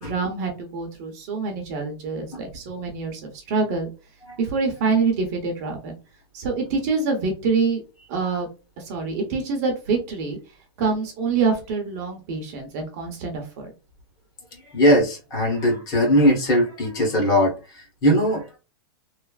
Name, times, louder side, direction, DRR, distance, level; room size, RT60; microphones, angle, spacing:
voice 1, 0.0-3.9 4.4-6.0 6.3-7.8 8.1-8.5 8.8-10.4 10.8-13.7, right 4 dB, 40° right, 3 dB, 0.8 m, -25 dB
voice 2, 14.5-18.6, equal, 25° left, 0 dB, 1.1 m, -20 dB
3.1 x 2.0 x 2.3 m, 0.31 s
supercardioid pair, 165°, 13 cm